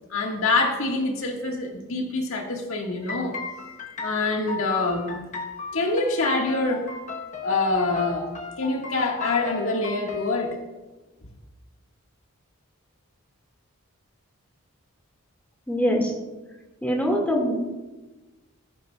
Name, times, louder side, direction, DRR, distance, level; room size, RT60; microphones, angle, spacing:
voice 1, 0.1-3.4 4.0-5.2 5.7-6.9 7.4-8.3 8.6-10.6, left 3 dB, 70° left, 1 dB, 1.6 m, -25 dB
sound 1, 3.0-10.4, left 4 dB, 35° left, 1.0 m, -36 dB
voice 2, 15.7-16.1 16.8-17.5, equal, 5° left, 0 dB, 1.8 m, -23 dB
14.5 x 14.0 x 2.3 m, 1.2 s
head